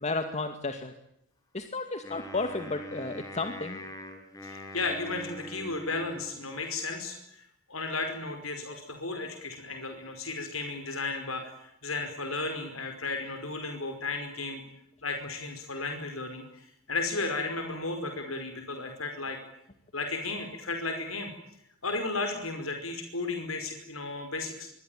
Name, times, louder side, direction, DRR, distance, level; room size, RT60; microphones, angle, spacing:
voice 1, 0.0-0.9 1.5-3.8, left 3 dB, 35° left, 7 dB, 2.3 m, -33 dB
Wind instrument woodwind instrument, 2.0-6.5, equal, 15° left, 5.8 m, -43 dB
voice 2, 4.4-14.6 15.0-19.4 19.9-21.3 21.8-24.7, left 3 dB, 85° left, 6 dB, 5.1 m, -34 dB
25.5 x 24.0 x 9.3 m, 0.78 s
head